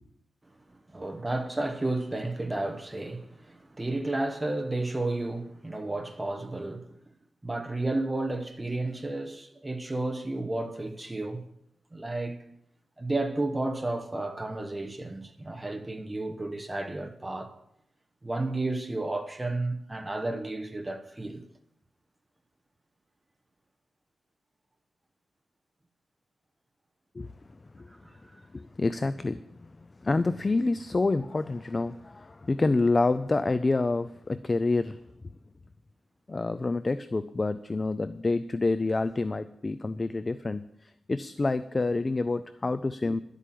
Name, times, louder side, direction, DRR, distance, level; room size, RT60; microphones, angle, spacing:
voice 1, 0.7-6.9 7.4-11.4 11.9-12.4 13.0-17.5 18.2-21.5 27.9-28.2 43.0-43.2, right 2 dB, 15° right, 1.2 m, -32 dB
voice 2, 28.5-35.0 36.3-43.2, left 3 dB, 25° left, 0.4 m, -28 dB
11.5 x 8.3 x 7.7 m
wide cardioid pair, 155°, 0 cm